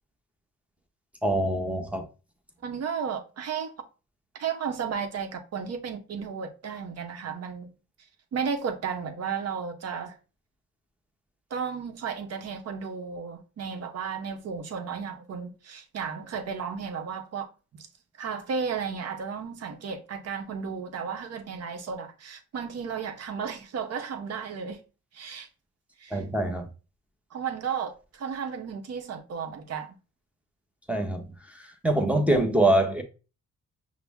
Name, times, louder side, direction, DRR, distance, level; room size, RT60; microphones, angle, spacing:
voice 1, 1.2-2.1 26.1-26.7 30.9-31.2 31.8-33.0, right 1 dB, 5° right, 0.8 m, -24 dB
voice 2, 2.6-3.7 4.4-7.7 8.3-10.2 11.5-17.9 18.2-24.8 25.1-25.5 26.0-26.2 27.3-30.0, right 6 dB, 55° right, 0.8 m, -34 dB
5.8 x 2.1 x 3.5 m
cardioid pair, 90°, 30 cm